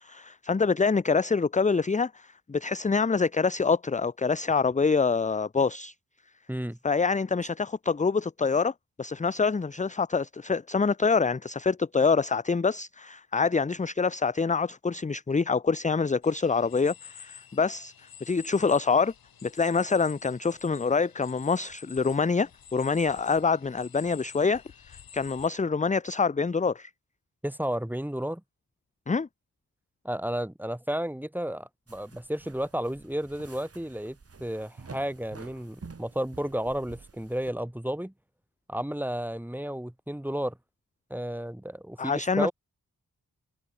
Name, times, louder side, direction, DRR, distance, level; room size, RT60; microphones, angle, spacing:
voice 1, 0.0-5.9 6.8-8.7 9.0-17.9 18.2-19.1 19.4-24.6 24.9-26.9 29.1-29.3 42.0-42.5, left 5 dB, 20° left, 0.6 m, -26 dB
sound 1, 16.2-25.5, left 8 dB, 90° left, 1.8 m, -50 dB
voice 2, 27.4-28.4 30.0-38.1 38.7-40.6 41.1-42.5, equal, 5° right, 1.9 m, -32 dB
sound 2, 31.9-37.5, right 4 dB, 45° right, 2.0 m, -49 dB
cardioid pair, 55°, 35 cm